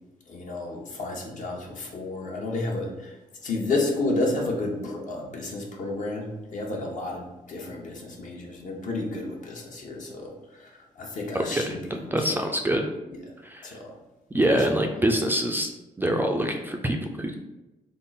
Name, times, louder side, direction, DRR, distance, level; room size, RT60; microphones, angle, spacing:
voice 1, 0.3-3.2 3.4-12.5 13.6-13.9 14.5-14.7, left 2 dB, 60° left, -1 dB, 0.9 m, -31 dB
voice 2, 11.3-11.8 12.0-12.8 13.4-13.8 14.3-15.7 16.0-17.3, right 1 dB, 15° right, 3 dB, 0.4 m, -25 dB
3.6 x 2.0 x 3.9 m, 0.99 s
cardioid pair, 95°, 15 cm